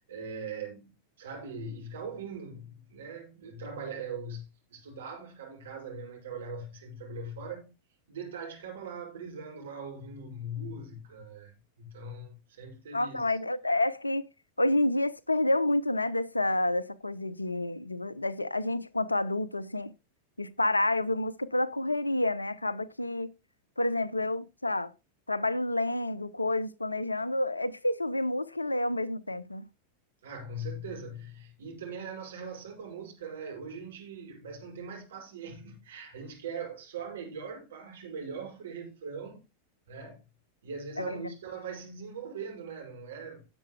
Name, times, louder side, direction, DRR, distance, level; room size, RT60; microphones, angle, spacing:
voice 1, 0.0-7.7 8.1-13.3 30.2-39.4 39.9-40.2 40.6-43.5, right 3 dB, 65° right, 5.7 m, -41 dB
voice 2, 12.9-14.3 14.6-19.9 20.4-23.3 23.8-24.9 25.3-29.7 41.0-41.3, left 1 dB, 85° left, 0.7 m, -29 dB
18.0 x 7.1 x 2.2 m
figure-of-eight pair, 90°, 0 cm